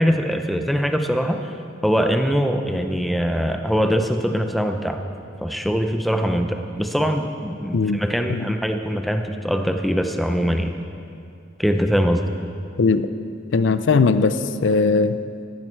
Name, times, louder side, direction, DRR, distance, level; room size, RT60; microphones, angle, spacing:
voice 1, 0.0-1.5 1.8-5.0 5.4-10.7 11.6-12.2, equal, ahead, 5 dB, 0.6 m, -22 dB
voice 2, 13.5-14.4 14.6-15.2, left 4 dB, 75° left, 12 dB, 0.5 m, -18 dB
14.0 x 11.5 x 4.5 m, 2.5 s
head